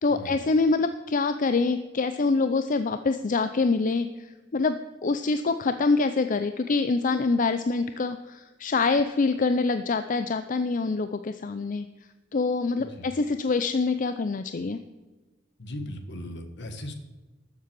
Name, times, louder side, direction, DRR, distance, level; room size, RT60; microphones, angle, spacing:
voice 1, 0.0-4.8 5.0-11.9 12.3-14.8, left 3 dB, 45° left, 10 dB, 0.5 m, -25 dB
voice 2, 15.6-16.9, left 1 dB, 65° left, 7 dB, 1.5 m, -38 dB
13.0 x 7.5 x 6.1 m, 1.2 s
head